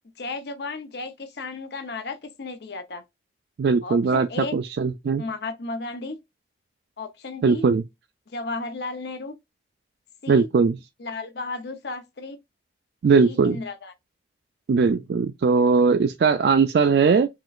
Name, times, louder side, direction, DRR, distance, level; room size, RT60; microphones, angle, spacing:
voice 1, 0.2-3.0 3.8-4.5 5.2-6.2 7.0-7.6 8.3-9.4 10.2-10.5 11.0-12.4 13.2-13.9, left 3 dB, 70° left, 0.6 m, -34 dB
voice 2, 3.6-4.3 4.5-5.2 7.4-7.8 10.3-10.8 13.0-13.6 14.7-17.3, right 5 dB, 70° right, 0.3 m, -19 dB
3.8 x 3.0 x 2.3 m
head